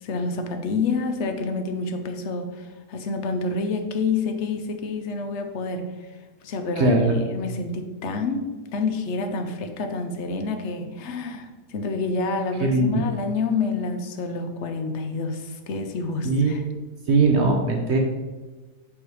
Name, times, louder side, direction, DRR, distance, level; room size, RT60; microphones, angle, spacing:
voice 1, 0.0-6.1 6.4-16.6, left 3 dB, 60° left, 7 dB, 0.8 m, -28 dB
voice 2, 6.8-7.1 12.6-13.1 16.2-16.7 17.1-18.0, right 3 dB, 55° right, 1 dB, 0.8 m, -20 dB
5.4 x 4.7 x 4.7 m, 1.2 s
omnidirectional pair, 1.8 m